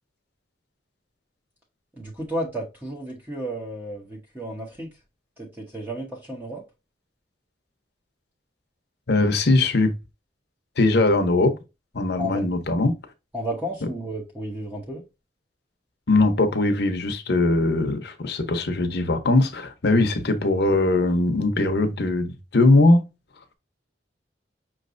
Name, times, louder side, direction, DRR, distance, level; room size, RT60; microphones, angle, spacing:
voice 1, 1.9-4.9 5.4-6.6 12.2-12.4 13.3-15.0, right 1 dB, 10° right, 1.0 m, -32 dB
voice 2, 9.1-9.9 10.8-11.5 11.9-12.9 16.1-23.0, left 2 dB, 60° left, 0.9 m, -20 dB
5.9 x 3.2 x 2.5 m
head